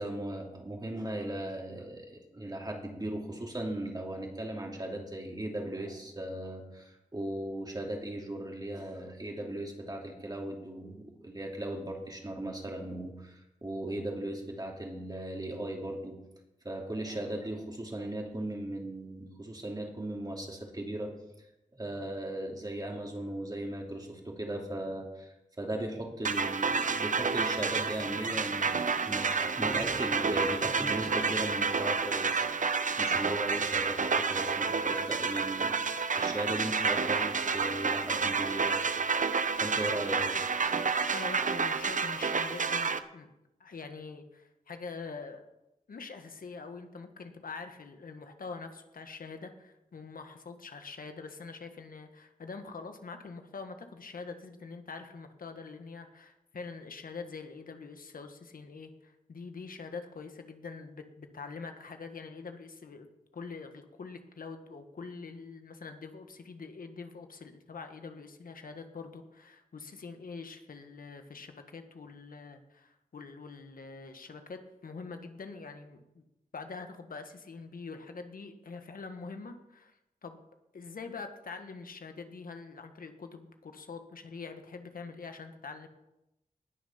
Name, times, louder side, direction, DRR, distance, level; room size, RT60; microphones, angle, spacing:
voice 1, 0.0-16.2 16.6-21.1 21.4-21.5 21.8-32.4 33.0-39.3 39.5-40.4, right 1 dB, 30° right, 0 dB, 2.7 m, -37 dB
sound 1, 26.2-43.0, right 5 dB, 65° right, 0.8 m, -30 dB
voice 2, 41.1-43.3 43.6-45.4 45.9-76.2 76.5-80.4 80.7-85.9, left 4 dB, 85° left, 7 dB, 1.4 m, -44 dB
19.0 x 6.4 x 5.8 m, 0.91 s
wide cardioid pair, 65°, 14 cm